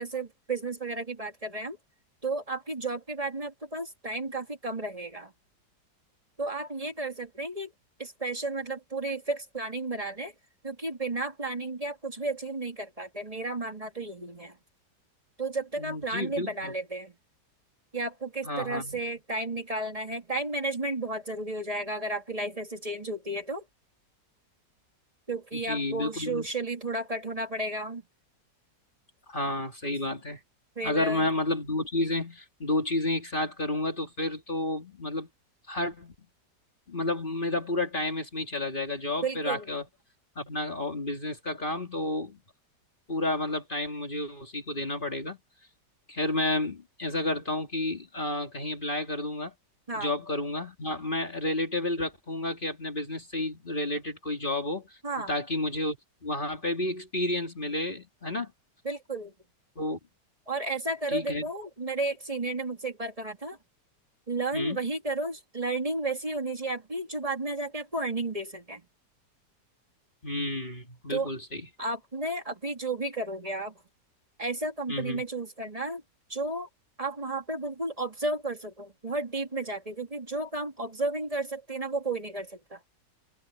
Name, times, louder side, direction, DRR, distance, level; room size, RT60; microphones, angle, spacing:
voice 1, 0.0-1.8 2.2-5.3 6.4-7.7 8.0-10.3 10.6-14.6 15.4-17.2 17.9-23.7 25.3-28.0 30.8-31.2 39.2-39.7 49.9-50.1 55.0-55.4 58.8-59.3 60.5-63.6 64.3-68.9 71.1-71.3 71.8-73.8 74.4-76.0 76.3-76.7 77.0-82.8, right 2 dB, 20° right, 2.1 m, -33 dB
voice 2, 15.8-16.7 18.4-19.0 25.5-26.5 29.3-30.4 30.8-35.3 35.7-36.1 36.9-39.8 40.4-42.4 43.1-45.4 46.1-49.5 49.9-56.0 56.2-58.5 59.8-60.0 61.1-61.5 64.5-64.8 70.2-71.6 74.9-75.2, left 2 dB, 30° left, 2.4 m, -31 dB
open air
omnidirectional pair, 1.9 m